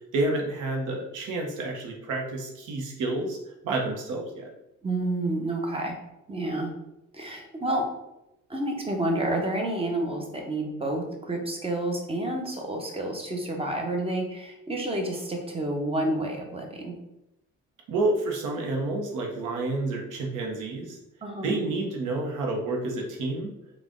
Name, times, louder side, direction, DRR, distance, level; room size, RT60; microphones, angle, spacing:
voice 1, 0.1-3.4 3.6-4.5 17.9-21.0 21.4-23.5, right 2 dB, 90° right, 1 dB, 0.9 m, -29 dB
voice 2, 4.8-6.0 6.3-6.7 7.1-7.9 8.5-17.0 21.2-21.6, right 1 dB, 20° right, 1 dB, 0.9 m, -29 dB
3.8 x 2.4 x 3.5 m, 0.88 s
cardioid pair, 90°, 30 cm